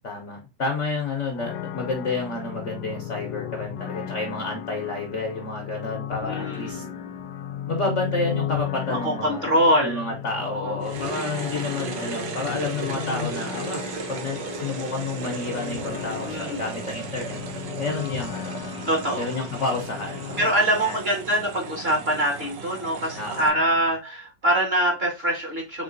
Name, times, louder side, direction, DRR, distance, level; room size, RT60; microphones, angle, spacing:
voice 1, 0.0-6.8 7.7-9.5 9.8-13.8 14.1-17.4 17.8-18.6 19.2-20.4 20.7-21.0 23.1-23.8, left 3 dB, 55° left, 2 dB, 0.9 m, -30 dB
sound 1, 1.3-20.5, left 9 dB, 75° left, 1.2 m, -35 dB
voice 2, 6.2-6.9 8.9-10.1 10.4-10.8 16.2-16.7 18.9-19.4 20.4-25.8, right 1 dB, 35° right, 1 dB, 1.4 m, -24 dB
sound 2, 10.8-23.5, right 5 dB, 75° right, 1.5 m, -36 dB
4.3 x 3.7 x 2.5 m, 0.26 s
omnidirectional pair, 2.0 m